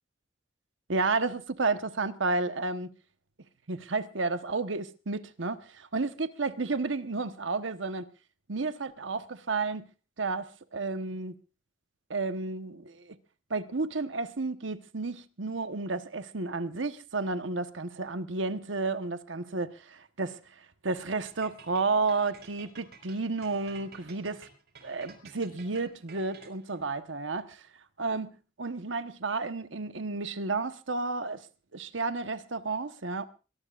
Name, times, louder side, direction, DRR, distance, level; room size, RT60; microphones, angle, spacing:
voice 1, 0.9-2.9 3.7-8.1 8.5-9.9 10.2-11.4 12.1-13.2 13.5-20.4 20.8-24.5 24.8-27.7 28.0-31.5 31.7-33.3, right 3 dB, 85° right, 1.2 m, -32 dB
sound 1, 21.3-26.8, right 5 dB, 55° right, 5.2 m, -52 dB
23.5 x 19.0 x 2.5 m
head